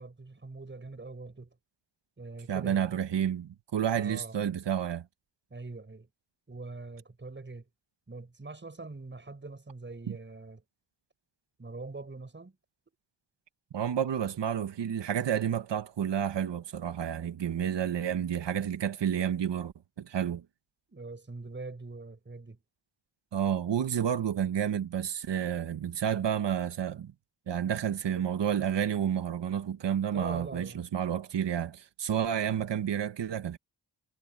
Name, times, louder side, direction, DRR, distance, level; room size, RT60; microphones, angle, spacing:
voice 1, 0.0-1.5 2.2-2.9 4.0-4.4 5.5-6.1 6.5-7.6 8.1-10.6 11.6-12.6 20.9-22.6 30.1-30.9, right 3 dB, 25° right, 6.8 m, -43 dB
voice 2, 2.5-5.0 10.1-10.2 13.7-20.4 23.3-27.1 27.5-33.6, right 9 dB, 70° right, 1.2 m, -30 dB
wide cardioid pair, 170°, 44 cm